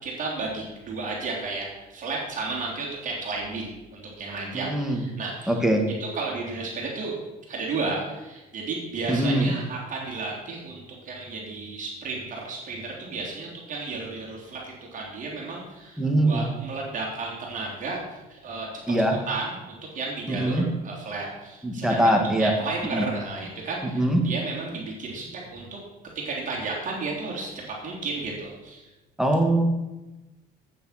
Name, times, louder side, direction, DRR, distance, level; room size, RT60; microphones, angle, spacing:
voice 1, 0.0-5.6 6.0-7.1 7.5-18.7 19.3-25.8 26.1-28.9, right 3 dB, 50° right, -3 dB, 3.5 m, -33 dB
voice 2, 4.5-5.0 5.5-5.8 9.1-9.5 16.0-16.5 18.9-19.2 20.3-20.7 21.6-22.5 22.9-23.1 23.8-24.2 29.2-29.6, right 1 dB, 5° right, 2 dB, 1.9 m, -22 dB
9.1 x 8.7 x 5.9 m, 1.1 s
cardioid pair, 110°, 17 cm